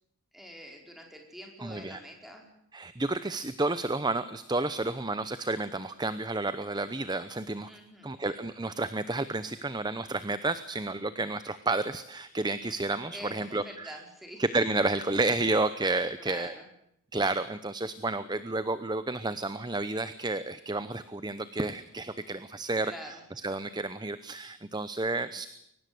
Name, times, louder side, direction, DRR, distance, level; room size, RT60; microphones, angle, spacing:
voice 1, 0.3-2.4 7.7-8.1 13.1-14.4 16.2-16.6 22.8-23.2, equal, ahead, 2 dB, 4.9 m, -45 dB
voice 2, 1.6-2.0 2.7-7.7 8.0-14.0 14.4-16.5 17.1-25.5, right 2 dB, 20° right, 13 dB, 0.8 m, -31 dB
23.5 x 19.0 x 7.8 m, 0.79 s
head